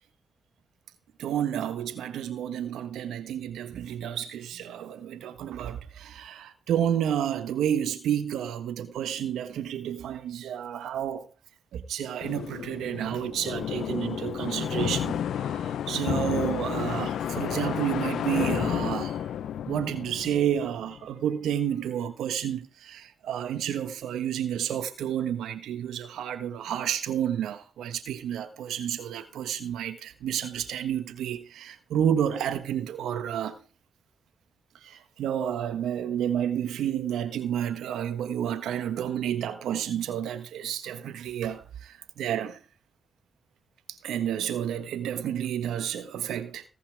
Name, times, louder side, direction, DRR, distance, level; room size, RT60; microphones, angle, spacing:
voice 1, 1.2-11.3 11.7-19.3 19.7-33.6 34.8-42.6 43.9-46.6, right 9 dB, 80° right, 1.3 m, -30 dB
sound 1, 12.2-21.0, left 9 dB, 80° left, 0.4 m, -31 dB
17.0 x 5.7 x 4.7 m
supercardioid pair, 40°, 0 cm